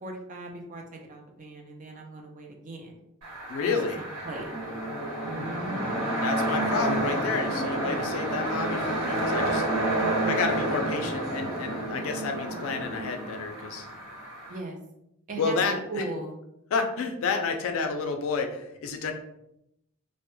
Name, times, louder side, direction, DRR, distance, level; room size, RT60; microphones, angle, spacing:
voice 1, 0.0-2.9 3.6-4.5 5.2-6.1 14.5-14.8 15.3-15.6 15.9-16.4, right 2 dB, 35° right, 1 dB, 0.4 m, -38 dB
sound 1, 3.2-14.6, right 1 dB, 80° right, 1.0 m, -29 dB
voice 2, 3.5-4.0 6.2-9.7 10.2-13.9 15.4-16.0 16.7-19.1, left 5 dB, 65° left, 5 dB, 0.3 m, -30 dB
2.1 x 2.0 x 2.9 m, 0.81 s
head